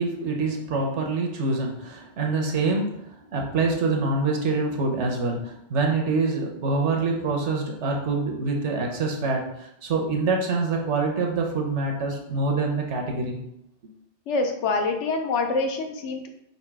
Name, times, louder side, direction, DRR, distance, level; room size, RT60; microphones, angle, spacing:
voice 1, 0.0-13.4, right 3 dB, 75° right, 2 dB, 1.1 m, -25 dB
voice 2, 14.3-16.3, left 3 dB, 75° left, 4 dB, 0.9 m, -25 dB
4.1 x 2.6 x 4.6 m, 0.80 s
omnidirectional pair, 1.2 m